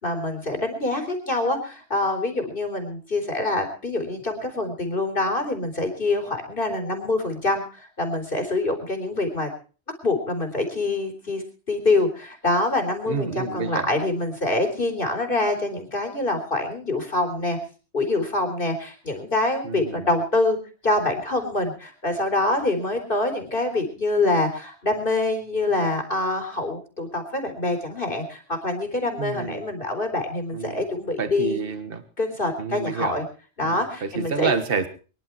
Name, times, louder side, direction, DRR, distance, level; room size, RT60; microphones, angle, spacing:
voice 1, 0.0-9.5 10.0-17.6 17.9-20.6 20.8-31.6 32.2-33.2 33.6-34.5, left 2 dB, 55° left, 5 dB, 3.8 m, -25 dB
voice 2, 13.1-13.9 19.6-20.1 29.2-29.6 30.5-30.8 31.2-32.0 32.6-33.1 33.6-34.9, right 5 dB, 60° right, 10 dB, 1.6 m, -29 dB
23.5 x 11.0 x 4.5 m, 0.37 s
omnidirectional pair, 1.1 m